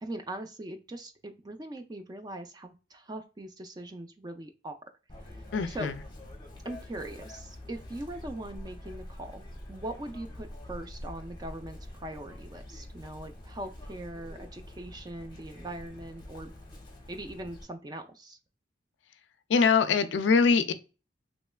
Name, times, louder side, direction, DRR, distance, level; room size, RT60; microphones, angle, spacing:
voice 1, 0.0-4.8 5.3-5.9 6.6-16.5 17.1-18.4, right 1 dB, 20° right, 0.3 m, -41 dB
Chirp tweet, 5.1-17.6, left 1 dB, 25° left, 0.8 m, -46 dB
voice 2, 5.5-6.0 19.5-20.7, left 5 dB, 70° left, 0.4 m, -23 dB
3.2 x 3.0 x 2.2 m
head